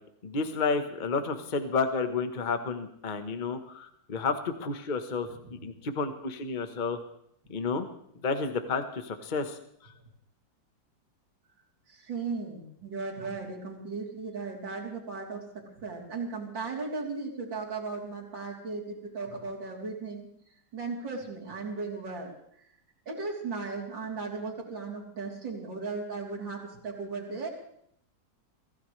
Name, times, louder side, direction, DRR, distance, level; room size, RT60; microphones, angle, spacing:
voice 1, 0.2-7.0 7.5-7.9 8.2-9.6, left 4 dB, 30° left, 7 dB, 1.2 m, -31 dB
voice 2, 11.9-20.3 20.7-22.3 23.1-27.5, right 4 dB, 75° right, -3 dB, 4.3 m, -36 dB
25.0 x 16.5 x 3.3 m, 0.69 s
omnidirectional pair, 2.0 m